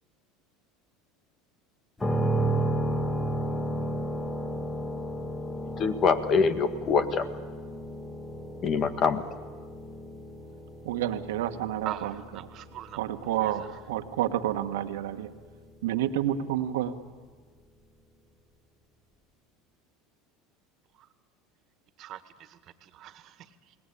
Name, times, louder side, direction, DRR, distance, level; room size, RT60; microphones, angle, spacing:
sound 1, 2.0-15.7, right 1 dB, 15° left, 2.4 m, -33 dB
voice 1, 5.8-7.3 8.6-9.2, left 5 dB, 45° left, 1.7 m, -24 dB
voice 2, 10.8-12.1 13.0-15.3 15.8-16.9, right 11 dB, 80° right, 1.5 m, -29 dB
voice 3, 11.9-13.0 13.4-13.8 20.9-21.1 22.0-23.8, right 12 dB, 50° right, 1.8 m, -42 dB
29.0 x 19.0 x 8.6 m
hypercardioid pair, 95°, 0 cm